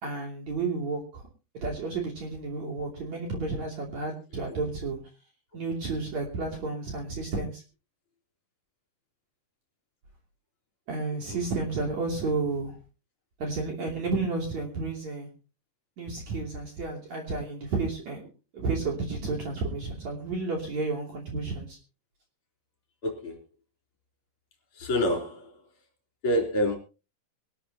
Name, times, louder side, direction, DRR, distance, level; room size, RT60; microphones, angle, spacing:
voice 1, 0.0-1.3 1.6-5.0 5.5-7.6 10.9-12.8 13.4-15.3 16.0-18.2 18.5-21.8, right 3 dB, 45° right, 3.9 m, -31 dB
voice 2, 23.0-23.4 24.7-25.6 26.2-26.8, equal, 35° left, 4.0 m, -27 dB
23.5 x 12.5 x 2.9 m
omnidirectional pair, 4.5 m